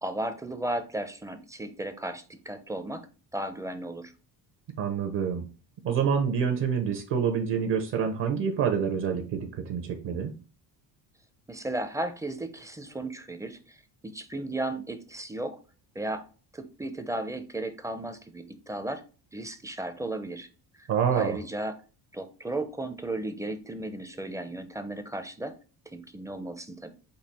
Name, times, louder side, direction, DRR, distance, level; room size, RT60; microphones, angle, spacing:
voice 1, 0.0-3.1 3.3-4.1 11.5-13.8 14.0-15.6 15.9-16.2 16.5-19.0 19.3-20.5 20.8-20.9 21.1-21.8 22.1-25.5 25.9-26.9, right 1 dB, 5° right, 8 dB, 0.4 m, -35 dB
voice 2, 4.8-5.4 5.8-10.3 20.9-21.4, right 7 dB, 60° right, 4 dB, 0.8 m, -27 dB
5.3 x 2.4 x 4.1 m, 0.35 s
cardioid pair, 110°, 46 cm